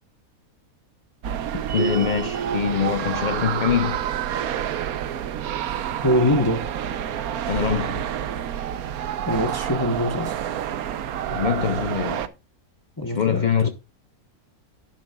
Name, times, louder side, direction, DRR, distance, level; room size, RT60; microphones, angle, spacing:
sound 1, 1.2-12.3, right 9 dB, 90° right, 1.2 m, -28 dB
voice 1, 1.7-4.0 7.5-8.0 11.3-12.3 13.0-13.7, left 8 dB, 60° left, 0.4 m, -24 dB
sound 2, 1.7-2.5, right 9 dB, 65° right, 1.4 m, -30 dB
voice 2, 6.0-6.6 9.3-10.4 13.0-13.7, left 1 dB, 20° left, 0.8 m, -23 dB
12.0 x 10.5 x 2.3 m
omnidirectional pair, 1.5 m